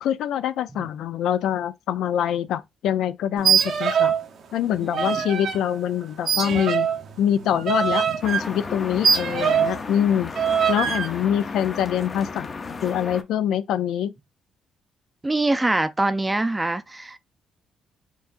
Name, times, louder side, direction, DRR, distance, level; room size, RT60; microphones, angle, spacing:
voice 1, 0.0-4.1 4.5-6.9 7.2-10.3 10.7-12.5 12.8-14.1, left 10 dB, 80° left, 0.4 m, -24 dB
sound 1, 3.4-4.3 4.5-5.6 6.3-9.8 10.4-11.1, right 7 dB, 65° right, 0.7 m, -23 dB
sound 2, 8.2-13.2, left 4 dB, 35° left, 0.6 m, -34 dB
voice 2, 15.2-17.2, right 2 dB, 15° right, 0.5 m, -24 dB
4.5 x 2.7 x 2.5 m
cardioid pair, 90°, 0 cm